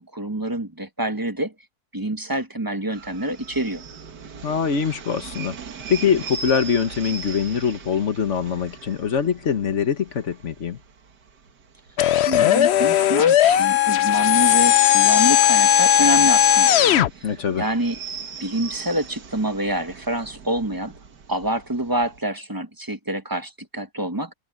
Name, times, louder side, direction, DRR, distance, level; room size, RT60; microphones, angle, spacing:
voice 1, 0.0-1.5 1.9-3.8 12.1-16.8 17.2-18.0 18.4-20.9 21.3-24.3, right 1 dB, 15° right, 0.8 m, -27 dB
sound 1, 2.9-22.2, right 5 dB, 90° right, 2.2 m, -40 dB
voice 2, 4.4-5.6 5.9-10.8 17.2-17.6, left 7 dB, 50° left, 1.5 m, -23 dB
sound 2, 12.0-17.1, left 11 dB, 65° left, 0.6 m, -17 dB
omnidirectional pair, 1.7 m